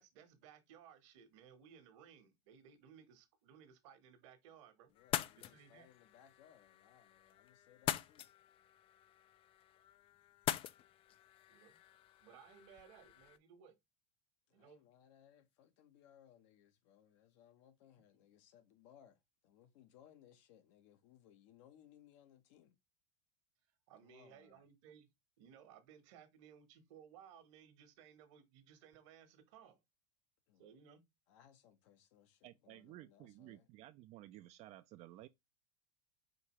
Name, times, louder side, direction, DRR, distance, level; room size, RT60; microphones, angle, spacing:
voice 1, 0.0-4.9 5.4-5.9 11.5-11.8 12.2-13.7 14.5-14.8 23.9-25.1 25.4-29.8 30.6-31.0, right 8 dB, 70° right, 1.2 m, -60 dB
voice 2, 4.9-8.3 14.5-19.2 19.4-22.7 24.0-24.6 30.5-30.7 31.3-33.7, left 10 dB, 65° left, 0.9 m, -65 dB
sound 1, 5.0-13.4, left 12 dB, 35° left, 0.3 m, -44 dB
voice 3, 32.4-35.3, right 15 dB, 45° right, 0.4 m, -55 dB
5.0 x 2.8 x 3.0 m
supercardioid pair, 115°, 16 cm